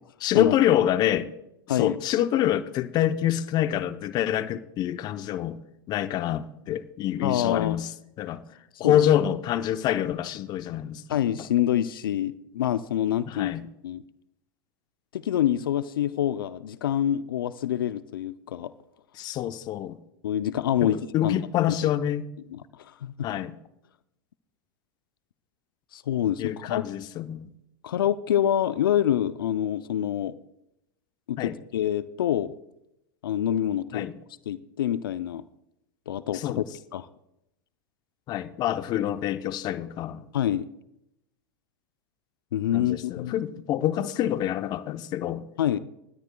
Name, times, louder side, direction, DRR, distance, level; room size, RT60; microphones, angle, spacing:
voice 1, 0.2-1.3 1.7-5.6 5.9-7.9 8.2-8.4 8.8-11.2 13.3-13.7 19.1-20.0 20.8-22.3 23.2-23.6 26.4-27.5 31.4-31.5 33.9-34.1 36.3-36.6 38.3-40.3 42.7-45.5, left 11 dB, 35° left, 0.7 m, -26 dB
voice 2, 7.2-7.9 8.8-9.1 11.1-13.5 13.8-14.0 15.1-18.7 20.2-21.4 22.5-23.1 25.9-26.9 27.8-30.3 31.3-32.5 33.2-34.1 34.5-35.4 36.1-36.6 36.9-37.1 40.3-40.7 42.5-43.3 45.6-45.8, left 11 dB, 75° left, 0.5 m, -26 dB
19.5 x 13.5 x 2.3 m
hypercardioid pair, 105°, 12 cm